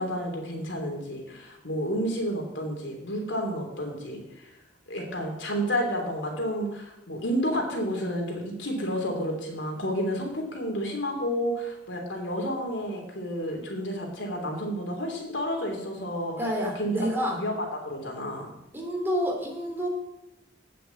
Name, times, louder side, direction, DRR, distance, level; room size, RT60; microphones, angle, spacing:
voice 1, 0.0-4.5 4.9-16.3 16.7-18.5, equal, 85° left, 1 dB, 3.3 m, -31 dB
voice 2, 16.4-17.4 18.7-19.9, equal, 10° right, -1 dB, 3.0 m, -28 dB
9.0 x 7.6 x 8.5 m, 0.92 s
head